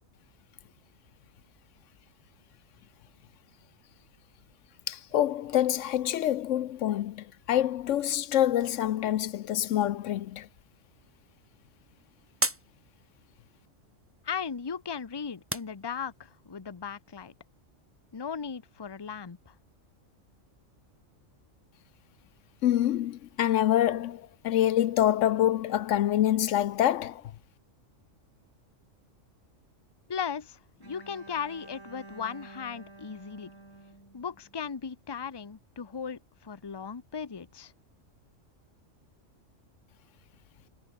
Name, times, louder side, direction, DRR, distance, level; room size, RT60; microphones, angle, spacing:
voice 1, 4.9-10.5 22.6-27.2, left 11 dB, 75° left, 0.9 m, -26 dB
sound 1, 10.9-16.4, right 1 dB, 10° right, 1.6 m, -39 dB
voice 2, 14.2-17.3 18.1-19.5 30.1-33.5 34.1-37.7, left 6 dB, 25° left, 0.8 m, -37 dB
Bowed string instrument, 30.8-34.9, right 2 dB, 80° right, 5.0 m, -50 dB
omnidirectional pair, 1.3 m